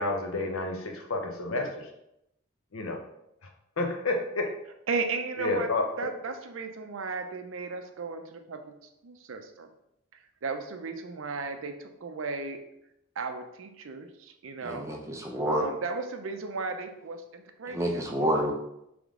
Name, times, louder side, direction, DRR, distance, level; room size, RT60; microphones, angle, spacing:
voice 1, 0.0-1.7 2.7-3.0 3.8-4.4 5.4-5.8, left 2 dB, 80° left, 3 dB, 0.7 m, -29 dB
voice 2, 4.9-8.7 9.0-9.7 10.4-12.6 13.2-14.8 15.5-18.1, right 4 dB, 70° right, 6 dB, 0.5 m, -35 dB
voice 3, 14.6-15.6 17.7-18.5, equal, 15° right, 1 dB, 0.5 m, -28 dB
3.6 x 3.4 x 3.6 m, 0.81 s
head